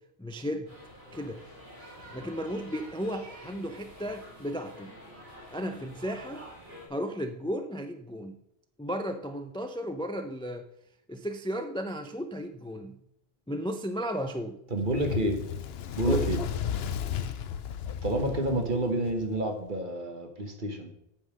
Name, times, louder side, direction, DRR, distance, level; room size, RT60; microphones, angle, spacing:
voice 1, 0.2-0.7 1.1-1.4 2.1-4.9 5.5-6.4 6.9-8.3 8.8-10.7 11.1-13.0 13.5-14.6 16.1-16.2, equal, 5° left, 7 dB, 0.4 m, -34 dB
sound 1, 0.6-6.9, equal, 80° right, 3.5 m, -48 dB
voice 2, 14.7-15.4 16.0-16.4 18.0-20.9, right 1 dB, 55° right, 4 dB, 1.4 m, -29 dB
Fire, 14.8-19.4, left 8 dB, 80° left, 0.9 m, -34 dB
8.9 x 5.6 x 6.2 m, 0.77 s
omnidirectional pair, 1.0 m